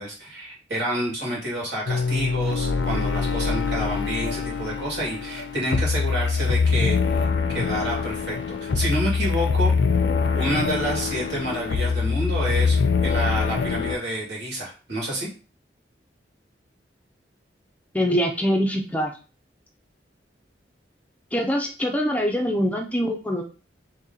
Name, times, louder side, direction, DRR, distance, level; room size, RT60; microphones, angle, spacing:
voice 1, 0.0-7.3 7.5-9.7 10.3-12.8 13.0-15.3, right 1 dB, 80° right, -4 dB, 1.9 m, -29 dB
sound 1, 1.9-14.0, left 5 dB, 80° left, 0.4 m, -24 dB
voice 2, 17.9-19.1 21.3-23.4, equal, 10° left, 2 dB, 0.4 m, -23 dB
3.1 x 2.9 x 3.7 m, 0.35 s
head